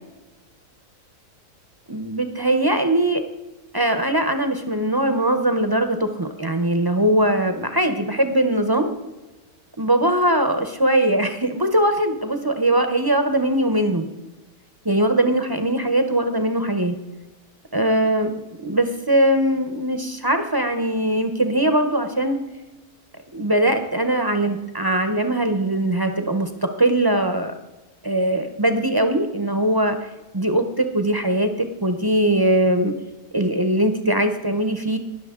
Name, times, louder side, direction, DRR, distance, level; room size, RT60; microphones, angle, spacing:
voice 1, 1.9-3.2 3.7-8.9 9.8-14.0 14.8-17.0 17.7-18.3 18.6-22.4 23.3-27.5 28.0-30.0 30.3-32.9 33.3-35.0, right 1 dB, 30° right, 7 dB, 0.4 m, -21 dB
19.5 x 6.8 x 3.6 m, 1.1 s
omnidirectional pair, 1.6 m